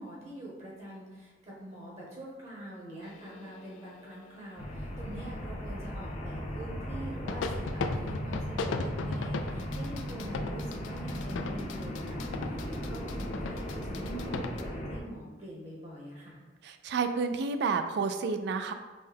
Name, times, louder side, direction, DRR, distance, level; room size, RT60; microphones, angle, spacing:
voice 1, 0.0-16.4, right 1 dB, 35° right, -5 dB, 1.0 m, -44 dB
sound 1, 3.0-5.0 7.3-14.6, left 4 dB, 90° left, 0.3 m, -38 dB
sound 2, 4.6-15.0, equal, 40° left, 0.6 m, -37 dB
voice 2, 16.6-18.7, right 5 dB, 65° right, 8 dB, 0.3 m, -30 dB
5.3 x 2.2 x 3.3 m, 1.3 s
head